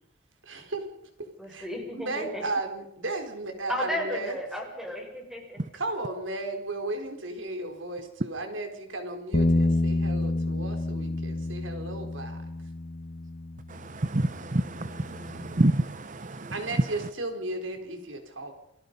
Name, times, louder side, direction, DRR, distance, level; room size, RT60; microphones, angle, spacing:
voice 1, 0.4-0.9 1.2-4.4 5.7-12.4 16.5-18.5, right 2 dB, 90° right, 5 dB, 4.4 m, -35 dB
voice 2, 1.4-2.4 3.7-5.6, equal, ahead, 1 dB, 6.9 m, -34 dB
Bass guitar, 9.3-15.6, left 2 dB, 45° left, 1.4 m, -29 dB
voice 3, 13.7-16.5, right 1 dB, 40° right, 13 dB, 0.9 m, -28 dB
28.5 x 20.0 x 5.5 m, 0.81 s
head